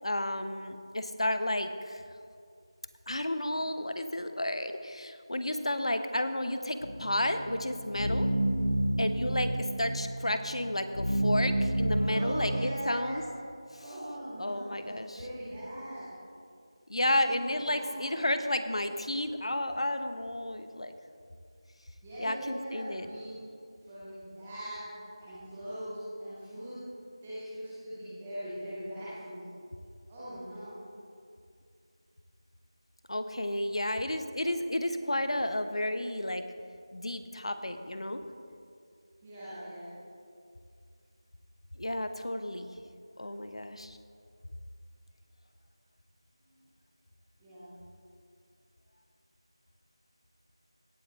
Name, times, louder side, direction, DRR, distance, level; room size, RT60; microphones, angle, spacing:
voice 1, 0.0-2.0 3.1-8.3 9.0-13.2 13.7-13.9 14.4-15.2 16.9-20.9 22.2-23.1 33.1-36.4 36.9-38.2 41.8-42.7 43.2-44.0, left 1 dB, 85° left, 9 dB, 0.9 m, -32 dB
sound 1, 6.8-12.6, right 1 dB, 60° left, 2.5 m, -30 dB
voice 2, 11.9-13.2 13.7-16.1 16.9-18.3 22.0-23.3 23.8-24.9 25.2-26.8 27.2-29.5 30.1-30.7 39.2-39.9 47.4-47.8, equal, ahead, -10 dB, 0.3 m, -41 dB
17.0 x 6.2 x 4.2 m, 2.3 s
figure-of-eight pair, 180°, 3 cm